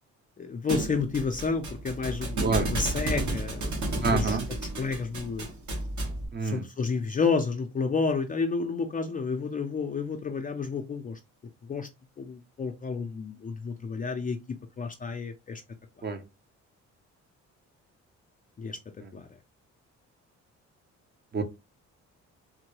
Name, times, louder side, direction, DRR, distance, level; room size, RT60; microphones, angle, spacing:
voice 1, 0.4-4.4 4.8-5.5 6.4-11.2 11.7-11.9 12.2-14.4 14.8-15.6 18.6-18.8 19.1-19.3, left 4 dB, 30° left, 0.4 m, -30 dB
Thump thud, 0.7-6.3, right 1 dB, 70° right, 1.4 m, -32 dB
voice 2, 4.0-4.4 6.3-6.6 16.0-16.2 21.3-21.4, right 4 dB, 35° right, 0.7 m, -27 dB
3.6 x 2.1 x 3.0 m
cardioid pair, 90°, 30 cm